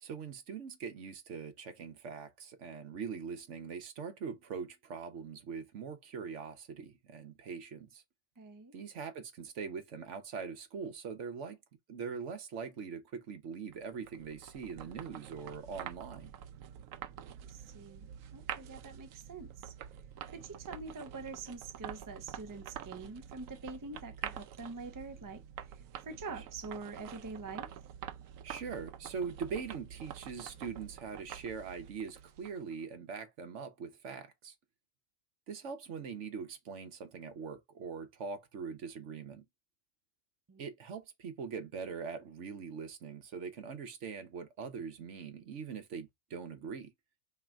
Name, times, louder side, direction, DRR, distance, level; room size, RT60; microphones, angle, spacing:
voice 1, 0.0-8.0 8.7-11.6 11.9-16.3 28.4-34.5 35.5-39.4 40.6-46.9, right 6 dB, 65° right, 1.2 m, -42 dB
voice 2, 8.4-8.7 17.5-19.7 20.3-27.7 40.5-40.6, right 3 dB, 25° right, 0.4 m, -45 dB
sound 1, 13.7-32.7, right 10 dB, 85° right, 1.0 m, -47 dB
3.7 x 3.2 x 4.4 m
omnidirectional pair, 1.3 m